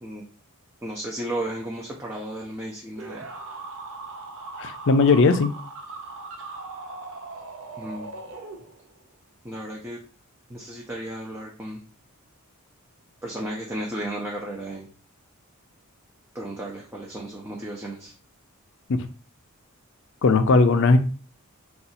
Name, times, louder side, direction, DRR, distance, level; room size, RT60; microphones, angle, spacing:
voice 1, 0.8-3.3 7.7-8.1 9.4-10.0 10.5-11.8 13.2-14.9 16.3-18.1, right 1 dB, 10° right, -3 dB, 0.5 m, -34 dB
sound 1, 3.0-9.0, right 3 dB, 60° right, 0.6 m, -39 dB
voice 2, 4.6-5.5 18.9-19.0 20.2-21.0, left 3 dB, 55° left, 9 dB, 0.4 m, -18 dB
2.7 x 2.4 x 4.0 m, 0.37 s
head